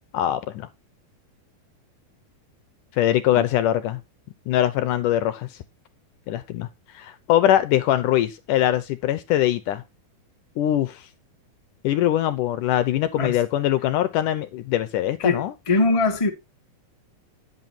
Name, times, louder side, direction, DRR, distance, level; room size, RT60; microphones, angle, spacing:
voice 1, 0.1-0.7 3.0-4.0 4.5-5.5 6.3-6.7 6.9-9.8 10.6-11.0 11.8-15.5, left 12 dB, 75° left, 2.1 m, -22 dB
voice 2, 15.2-16.3, left 3 dB, 45° left, 0.4 m, -22 dB
10.5 x 8.2 x 4.2 m
omnidirectional pair, 4.4 m